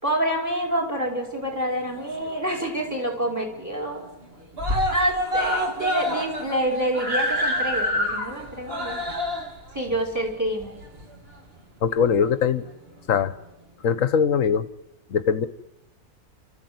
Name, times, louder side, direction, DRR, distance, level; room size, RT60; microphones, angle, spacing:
voice 1, 0.0-4.0 4.9-9.0 9.7-10.8, right 1 dB, 10° right, 2 dB, 4.9 m, -27 dB
Screaming, 1.7-2.6 2.9-3.0 3.3-3.4 3.7-4.2 4.5-11.4 12.2-12.3, left 1 dB, 40° right, 2.5 m, -27 dB
voice 2, 11.8-12.6 13.1-13.3 13.8-14.7 15.1-15.5, left 7 dB, 60° left, 14 dB, 1.4 m, -21 dB
28.0 x 14.0 x 9.5 m, 0.92 s
omnidirectional pair, 1.6 m